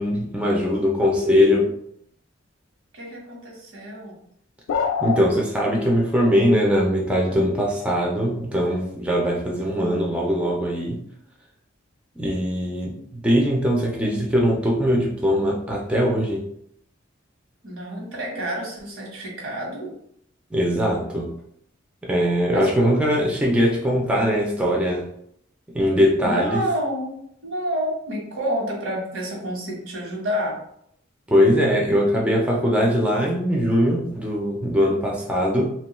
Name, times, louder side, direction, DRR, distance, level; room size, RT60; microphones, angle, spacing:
voice 1, 0.0-1.7 5.0-11.0 12.2-16.5 20.5-21.3 22.0-25.0 25.7-26.6 31.3-35.7, equal, 5° right, -2 dB, 0.4 m, -21 dB
voice 2, 2.9-4.2 17.6-19.9 22.5-22.7 26.2-30.6, equal, 80° right, -1 dB, 1.0 m, -29 dB
sound 1, 4.7-5.2, left 6 dB, 85° left, 0.3 m, -23 dB
2.9 x 2.2 x 3.0 m, 0.70 s
head